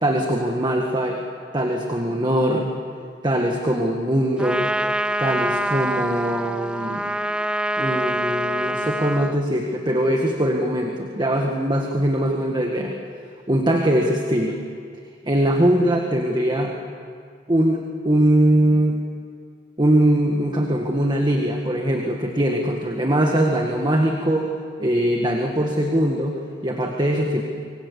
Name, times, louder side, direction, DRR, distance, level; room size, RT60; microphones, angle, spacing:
voice 1, 0.0-1.2 1.5-2.7 3.2-4.7 5.2-7.0 7.8-13.0 13.5-14.6 15.3-16.7 17.5-19.0 19.8-24.5 24.8-27.4, right 1 dB, 25° right, 1 dB, 1.8 m, -21 dB
Trumpet, 4.4-9.4, right 1 dB, 5° right, 0.6 m, -25 dB
26.0 x 24.0 x 8.2 m, 2.2 s
head